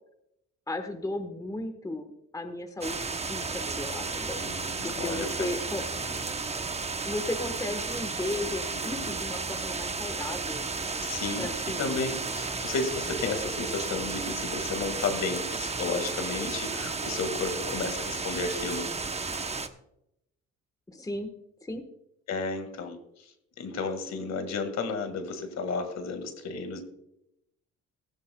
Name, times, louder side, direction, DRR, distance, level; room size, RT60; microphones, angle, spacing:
voice 1, 0.7-4.5 4.8-5.8 7.1-10.6 11.4-12.2 20.9-21.3 21.6-21.8, left 2 dB, 10° left, 6 dB, 1.3 m, -35 dB
sound 1, 2.8-19.7, right 4 dB, 20° right, 0.8 m, -33 dB
voice 2, 4.4-5.5 6.1-6.2 9.0-9.2 11.0-11.5 11.8-18.9 22.3-23.0 23.6-26.8, left 4 dB, 60° left, 7 dB, 1.9 m, -33 dB
16.5 x 13.0 x 2.3 m, 0.81 s
cardioid pair, 90°, 30 cm